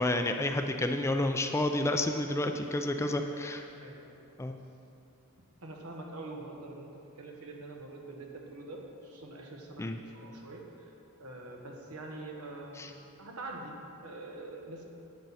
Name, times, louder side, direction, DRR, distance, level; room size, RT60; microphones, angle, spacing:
voice 1, 0.0-3.6 4.4-4.5 9.8-10.0 12.8-12.9, left 1 dB, 10° left, 6 dB, 0.3 m, -30 dB
voice 2, 0.5-0.9 3.0-3.3 3.8-4.3 5.6-10.9 11.2-12.9 13.2-14.8, right 2 dB, 80° right, 1 dB, 1.3 m, -45 dB
10.0 x 9.0 x 4.1 m, 2.7 s
head